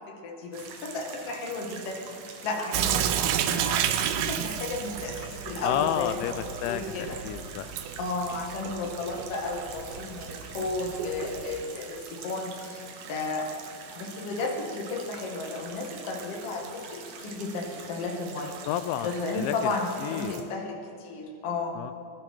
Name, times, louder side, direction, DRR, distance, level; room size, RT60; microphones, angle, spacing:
voice 1, 0.0-2.0 2.4-3.2 3.5-7.2 8.0-13.5 14.0-18.6 19.0-21.8, left 3 dB, 45° left, -1 dB, 2.1 m, -33 dB
sound 1, 0.5-20.4, right 6 dB, 70° right, 2.1 m, -45 dB
Sink (filling or washing) / Drip, 2.7-11.6, right 10 dB, 90° right, 2.2 m, -31 dB
voice 2, 5.6-6.8 7.2-7.8 18.7-19.1 19.3-19.7 20.0-20.4 21.8-21.9, left 11 dB, 85° left, 11 dB, 2.8 m, -30 dB
22.0 x 13.5 x 4.4 m, 2.5 s
omnidirectional pair, 5.3 m